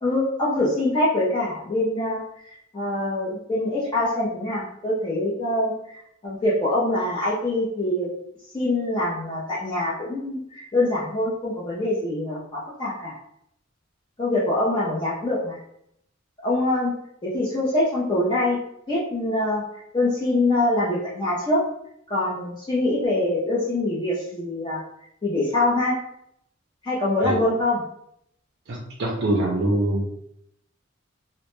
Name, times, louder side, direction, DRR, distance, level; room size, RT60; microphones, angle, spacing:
voice 1, 0.0-5.7 6.2-8.1 8.5-13.1 14.2-15.6 16.4-16.9 17.2-18.6 18.9-19.6 19.9-21.6 22.1-24.8 25.2-26.0 26.8-27.8, left 1 dB, 25° left, -7 dB, 0.4 m, -24 dB
voice 2, 28.7-30.2, right 1 dB, 55° right, -2 dB, 0.4 m, -24 dB
2.1 x 2.0 x 3.0 m, 0.75 s
head